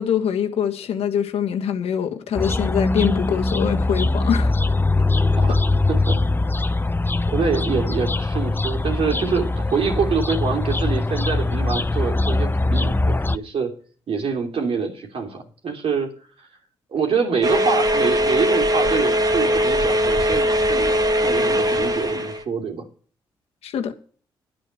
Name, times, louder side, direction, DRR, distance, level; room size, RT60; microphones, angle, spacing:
voice 1, 0.0-4.6 23.6-23.9, left 8 dB, 75° left, 1.7 m, -23 dB
sound 1, 2.4-13.4, left 2 dB, 20° left, 0.7 m, -22 dB
voice 2, 7.3-13.7 14.1-16.1 16.4-16.5 16.9-22.8, right 5 dB, 65° right, 3.0 m, -25 dB
sound 2, 17.4-22.4, equal, 35° right, 1.8 m, -20 dB
10.5 x 9.1 x 6.5 m
hypercardioid pair, 45°, 10 cm